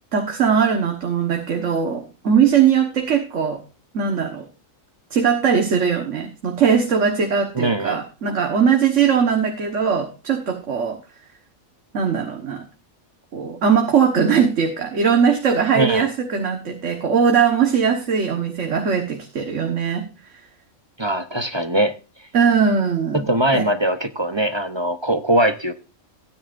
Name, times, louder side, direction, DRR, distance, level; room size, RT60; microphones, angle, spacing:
voice 1, 0.1-3.6 3.9-4.5 5.1-11.0 11.9-12.6 13.3-20.4 22.3-23.2 23.5-23.7, right 7 dB, 60° right, 4 dB, 1.7 m, -20 dB
voice 2, 7.5-8.0 15.7-16.1 21.0-21.9 23.1-25.7, right 1 dB, 25° right, 9 dB, 0.7 m, -21 dB
16.0 x 9.9 x 2.5 m, 0.31 s
omnidirectional pair, 1.4 m